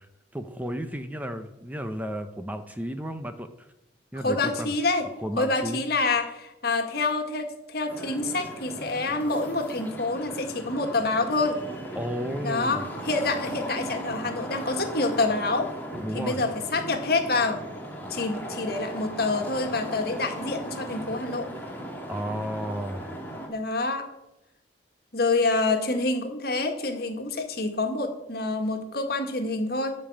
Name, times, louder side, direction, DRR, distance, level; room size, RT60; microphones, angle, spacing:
voice 1, 0.3-3.7 4.1-4.7 5.2-5.8 12.0-12.9 15.9-16.4 22.1-23.1, equal, 10° right, 8 dB, 0.7 m, -33 dB
voice 2, 4.2-5.1 5.4-11.6 12.4-15.7 16.1-17.6 18.1-21.5 23.5-24.1 25.1-29.9, left 3 dB, 60° left, 5 dB, 1.8 m, -27 dB
sound 1, 7.9-23.5, equal, 10° left, 2.2 m, -37 dB
13.0 x 5.4 x 8.6 m, 0.94 s
head